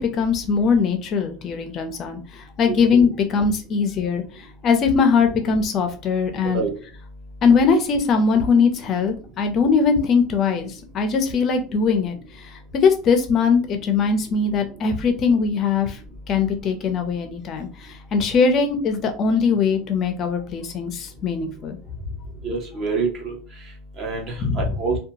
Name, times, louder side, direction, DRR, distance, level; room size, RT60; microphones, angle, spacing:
voice 1, 0.0-4.2 4.6-6.6 7.4-12.1 12.7-16.0 16.3-17.7 18.1-21.8 24.4-24.7, left 5 dB, 30° left, 6 dB, 0.5 m, -20 dB
voice 2, 22.4-23.3 24.0-25.0, right 4 dB, 30° right, 0 dB, 0.9 m, -26 dB
2.7 x 2.2 x 2.7 m, 0.36 s
cardioid pair, 170°, 0 cm